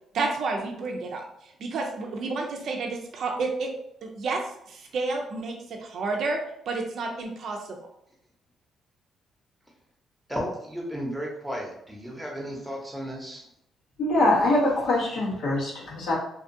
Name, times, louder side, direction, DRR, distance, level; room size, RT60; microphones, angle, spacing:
voice 1, 0.1-1.2 1.6-3.7 4.0-4.4 4.7-5.5 5.8-6.4 6.7-7.6, right 3 dB, 65° right, 1 dB, 0.4 m, -30 dB
voice 2, 10.3-13.5, equal, 5° right, -2 dB, 0.9 m, -34 dB
voice 3, 14.0-16.1, left 2 dB, 75° left, -5 dB, 1.1 m, -23 dB
2.6 x 2.4 x 2.6 m, 0.75 s
cardioid pair, 90°, 0 cm